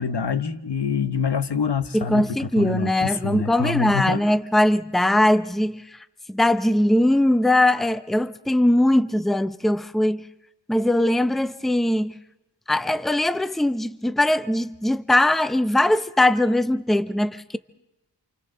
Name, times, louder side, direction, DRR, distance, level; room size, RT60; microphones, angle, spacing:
voice 1, 0.0-4.2, left 6 dB, 65° left, 1.1 m, -26 dB
voice 2, 1.9-6.0 6.3-10.3 10.7-12.1 12.7-17.6, left 1 dB, ahead, 0.7 m, -21 dB
28.5 x 28.0 x 3.9 m
wide cardioid pair, 50°, 44 cm